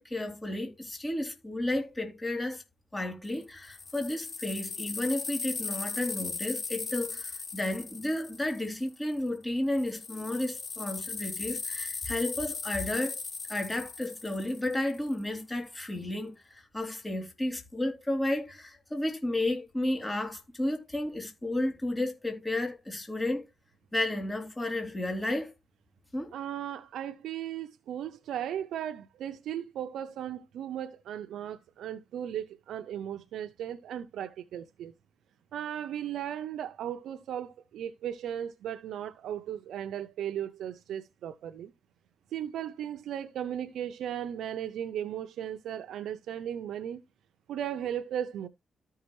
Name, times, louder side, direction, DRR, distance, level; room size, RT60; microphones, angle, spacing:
voice 1, 0.0-2.6 2.9-13.2 13.5-23.5 23.9-25.5 26.1-26.3, left 1 dB, 15° left, 3.4 m, -32 dB
sound 1, 3.2-9.2 9.7-15.1, left 4 dB, 45° left, 3.3 m, -38 dB
voice 2, 26.3-34.9 35.5-41.7 42.3-47.0 47.5-48.5, right 10 dB, 90° right, 0.6 m, -36 dB
13.0 x 5.6 x 3.1 m
cardioid pair, 90°, 0 cm